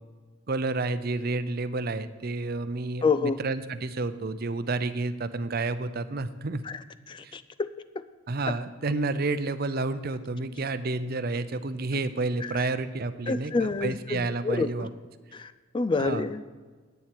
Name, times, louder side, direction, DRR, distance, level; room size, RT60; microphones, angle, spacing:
voice 1, 0.5-6.6 7.2-7.3 8.3-14.9 16.0-16.2, right 3 dB, 45° right, 12 dB, 0.6 m, -30 dB
voice 2, 3.0-3.4 6.6-7.7 8.5-8.6 11.9-12.0 12.4-12.5 13.3-14.9 15.3-16.6, left 4 dB, 25° left, 13 dB, 0.3 m, -29 dB
9.1 x 7.5 x 8.4 m, 1.4 s
head